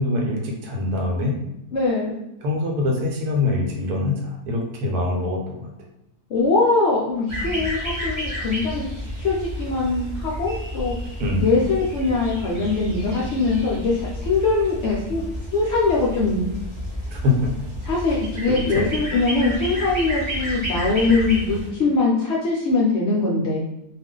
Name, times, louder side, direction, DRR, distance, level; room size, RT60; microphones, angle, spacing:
voice 1, 0.0-1.4 2.4-5.7 11.2-11.5 17.1-17.6 18.5-18.9, left 2 dB, 80° right, 1 dB, 1.2 m, -24 dB
voice 2, 1.7-2.1 6.3-8.9 9.2-11.0 11.4-15.2 15.5-16.6 17.9-23.6, left 3 dB, 70° left, -4 dB, 0.7 m, -22 dB
sound 1, 7.3-21.7, equal, 25° right, 0.8 m, -31 dB
2.5 x 2.4 x 3.6 m, 0.85 s
omnidirectional pair, 1.6 m